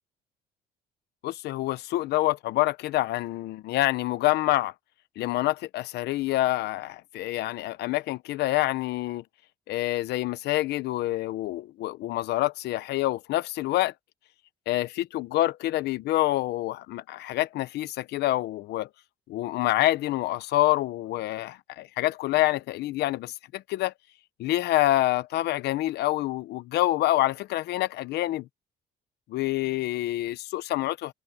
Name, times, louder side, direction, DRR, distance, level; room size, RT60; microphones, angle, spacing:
voice 1, 1.2-4.7 5.2-9.2 9.7-13.9 14.7-14.9 15.1-18.9 19.3-23.9 24.4-28.5 29.3-31.1, left 16 dB, 75° left, 1.0 m, -27 dB
cardioid pair, 110°, 17 cm